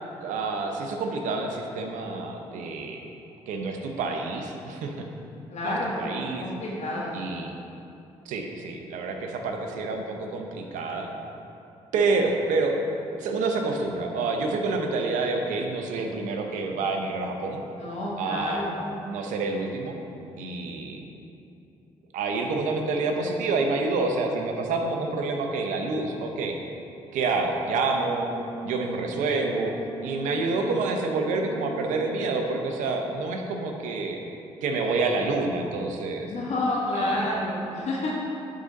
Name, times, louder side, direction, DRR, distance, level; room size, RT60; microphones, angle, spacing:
voice 1, 0.2-3.0 3.5-5.1 5.6-5.7 6.0-6.5 7.1-7.5 8.3-11.1 11.9-12.8 13.2-17.6 18.2-18.6 19.0-20.0 20.4-21.0 22.1-26.6 27.1-28.3 28.6-29.8 30.0-34.2 34.6-36.3 36.9-37.2, right 3 dB, 80° right, 3 dB, 0.7 m, -28 dB
voice 2, 5.5-6.1 6.4-7.3 17.8-18.7 36.3-38.1, left 1 dB, 60° left, -6 dB, 1.7 m, -29 dB
Brass instrument, 27.9-32.3, right 3 dB, 10° left, 1.3 m, -41 dB
11.0 x 3.9 x 4.0 m, 2.7 s
supercardioid pair, 55°, 13 cm